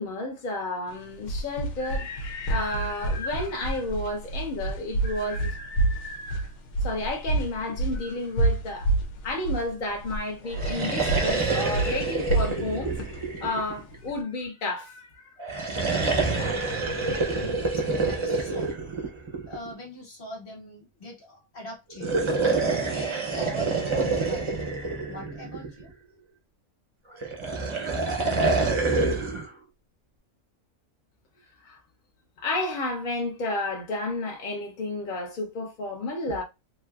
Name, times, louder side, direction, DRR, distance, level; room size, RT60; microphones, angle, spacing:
voice 1, 0.0-6.5 6.8-8.9 9.2-13.0 13.4-15.3 31.6-31.8 32.4-36.4, left 2 dB, 55° left, 0.5 m, -31 dB
sound 1, 0.9-14.2, right 2 dB, 90° left, 1.2 m, -29 dB
sound 2, 10.5-14.1 15.4-19.7 21.9-25.9 27.2-29.5, right 3 dB, 50° right, 0.3 m, -27 dB
voice 2, 16.0-16.8 17.1-18.8 19.4-22.2 22.6-24.5 25.1-25.9, left 1 dB, 40° left, 1.2 m, -42 dB
3.2 x 2.9 x 2.3 m
omnidirectional pair, 1.6 m